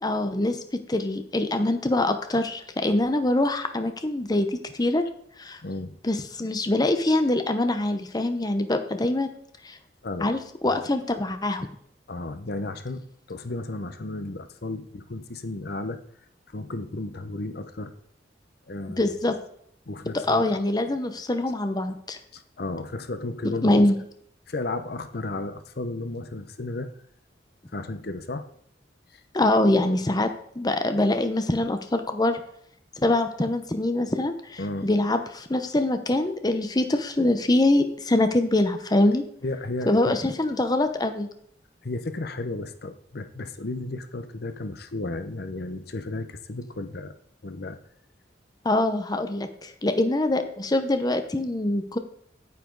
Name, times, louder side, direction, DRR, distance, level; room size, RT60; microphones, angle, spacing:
voice 1, 0.0-5.0 5.4-5.6 6.0-9.3 9.6-9.8 10.2-11.7 19.0-19.4 20.3-22.2 23.4-24.0 29.3-30.3 30.6-32.4 33.0-39.2 39.9-41.3 48.6-52.0, left 1 dB, 20° left, 8 dB, 0.8 m, -24 dB
voice 2, 5.6-6.0 10.0-10.3 10.7-10.8 12.1-16.0 16.5-17.9 18.7-19.1 19.9-20.6 22.3-23.9 24.5-26.9 27.7-28.5 29.1-29.2 34.6-34.9 39.4-40.2 41.8-47.2 47.4-47.8, left 2 dB, 60° left, 10 dB, 0.8 m, -33 dB
9.5 x 9.3 x 3.9 m, 0.68 s
head